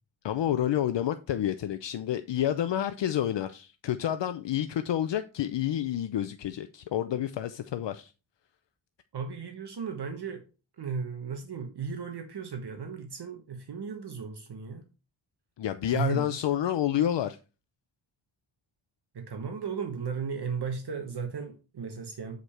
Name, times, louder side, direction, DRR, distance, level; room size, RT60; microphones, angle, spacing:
voice 1, 0.2-8.1 15.6-17.4, left 11 dB, 70° left, 0.6 m, -29 dB
voice 2, 9.1-10.4 10.8-14.8 15.8-16.4 19.1-22.4, right 5 dB, 60° right, 1.3 m, -35 dB
8.0 x 5.0 x 4.3 m
wide cardioid pair, 145°, 46 cm